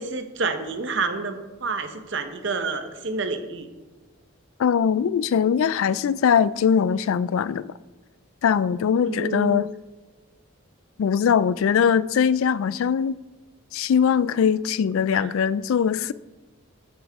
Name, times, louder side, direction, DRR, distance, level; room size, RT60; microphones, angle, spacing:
voice 1, 0.0-3.7 9.1-9.6 15.1-15.3, right 3 dB, 55° right, 0.9 m, -29 dB
voice 2, 4.6-7.7 8.4-9.7 11.0-13.2 13.7-16.1, left 7 dB, 70° left, 0.3 m, -21 dB
11.0 x 8.8 x 3.5 m
head